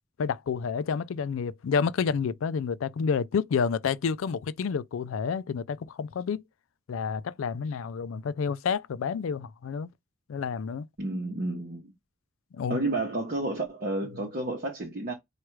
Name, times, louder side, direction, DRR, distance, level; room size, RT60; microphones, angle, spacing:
voice 1, 0.2-6.4 6.9-9.9 10.3-10.9 12.5-12.8, left 6 dB, 85° left, 0.4 m, -29 dB
voice 2, 11.0-11.9 12.7-15.1, right 2 dB, 45° right, 0.8 m, -31 dB
4.6 x 2.4 x 3.1 m
head